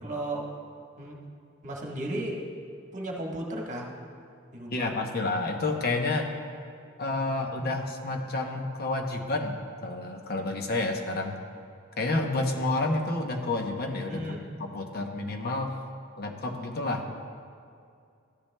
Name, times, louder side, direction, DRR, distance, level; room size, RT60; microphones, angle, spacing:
voice 1, 0.0-0.5 1.0-1.2 1.6-2.4 2.9-3.9 4.5-4.9 14.1-14.4, right 1 dB, 35° right, -2 dB, 1.3 m, -34 dB
voice 2, 4.7-6.3 7.0-11.4 12.0-15.8 16.2-17.1, left 2 dB, 50° left, 3 dB, 0.7 m, -30 dB
14.0 x 10.0 x 2.2 m, 2.4 s
head